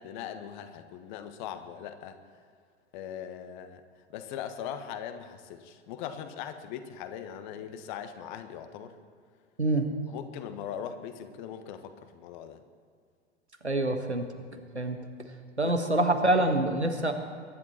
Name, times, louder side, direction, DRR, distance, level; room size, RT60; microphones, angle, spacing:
voice 1, 0.0-2.2 2.9-3.8 4.1-9.0 10.1-12.6 14.5-14.7 15.6-15.8, left 9 dB, 45° left, 9 dB, 1.3 m, -40 dB
voice 2, 13.6-14.3 14.7-15.0 15.6-17.1, right 1 dB, 90° right, 6 dB, 1.3 m, -25 dB
22.5 x 11.0 x 4.4 m, 2.1 s
figure-of-eight pair, 90°, 33 cm